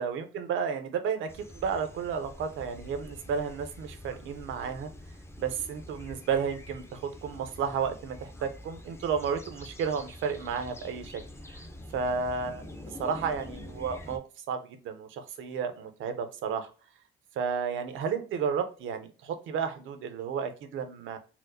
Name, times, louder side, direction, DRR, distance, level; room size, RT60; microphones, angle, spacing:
voice 1, 0.0-4.9 5.4-11.2 11.5-11.6 11.9-12.6 13.0-14.2 14.5-16.7 17.4-21.2, right 6 dB, 80° right, 8 dB, 0.6 m, -32 dB
sound 1, 1.3-14.2, left 1 dB, 15° left, 0.5 m, -46 dB
4.3 x 2.1 x 2.6 m, 0.37 s
cardioid pair, 90°, 20 cm